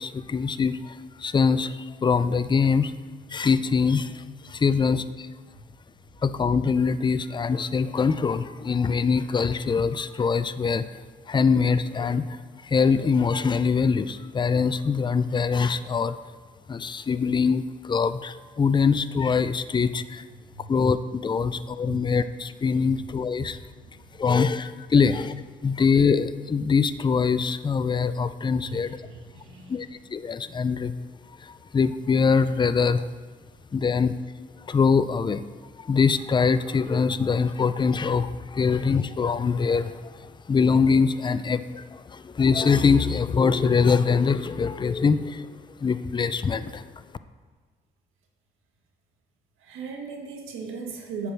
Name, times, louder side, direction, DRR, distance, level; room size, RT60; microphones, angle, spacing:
voice 1, 0.0-2.9 3.3-5.3 6.2-10.8 11.3-16.2 16.7-20.2 20.7-23.6 24.2-25.3 25.6-29.0 29.7-30.9 31.4-33.1 33.7-34.2 34.6-35.4 35.8-46.8, left 5 dB, 25° left, 13 dB, 0.4 m, -23 dB
voice 2, 28.6-29.9 49.6-51.3, right 4 dB, 85° right, 1 dB, 1.5 m, -38 dB
8.9 x 5.2 x 6.0 m, 1.4 s
cardioid pair, 90°, 20 cm